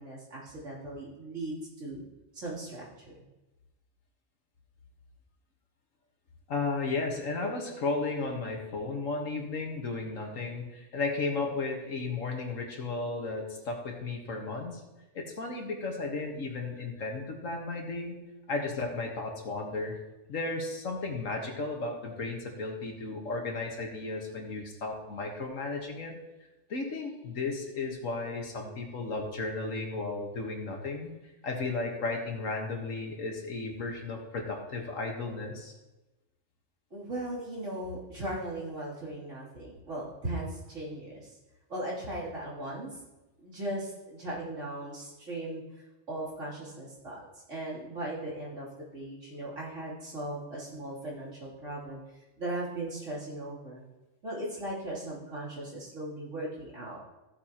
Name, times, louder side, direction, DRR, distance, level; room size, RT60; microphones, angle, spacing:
voice 1, 0.0-2.0 2.3-3.3 36.9-41.4 41.7-43.0 43.4-45.6 46.1-47.2 47.5-48.7 48.9-52.0 52.4-53.8 54.2-57.0, right 1 dB, 70° right, -7 dB, 3.5 m, -38 dB
voice 2, 6.5-14.8 15.1-18.2 18.5-20.0 20.3-26.2 26.7-31.1 31.4-35.7, left 3 dB, 85° left, 2 dB, 1.9 m, -34 dB
15.0 x 7.5 x 3.0 m, 1.1 s
omnidirectional pair, 1.3 m